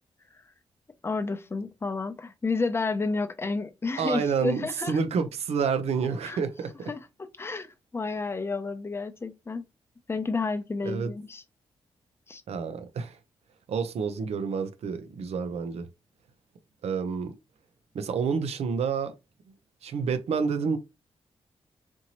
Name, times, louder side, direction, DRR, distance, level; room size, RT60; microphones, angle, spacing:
voice 1, 1.0-5.0 6.2-6.4 6.9-9.6 10.1-11.4 12.3-12.4, left 3 dB, 25° left, 0.6 m, -31 dB
voice 2, 4.0-6.9 10.8-11.1 12.5-13.2 13.7-15.9 16.8-17.4 17.9-19.1 19.8-20.8, right 6 dB, 80° right, 0.7 m, -29 dB
4.4 x 2.8 x 2.9 m
cardioid pair, 105°, 11 cm